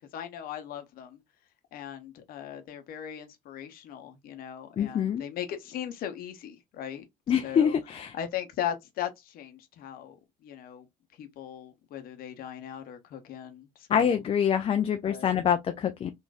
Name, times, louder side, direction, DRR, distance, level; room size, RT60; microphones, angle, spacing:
voice 1, 0.1-1.2 1.7-7.0 7.4-7.8 8.1-10.2 10.4-10.9 11.2-13.7 13.9-14.2 15.0-15.3, left 10 dB, 50° left, 0.8 m, -38 dB
voice 2, 4.8-5.2 7.3-8.1 13.9-16.1, left 8 dB, 30° left, 0.4 m, -25 dB
3.9 x 2.5 x 2.2 m
figure-of-eight pair, 55°, 19 cm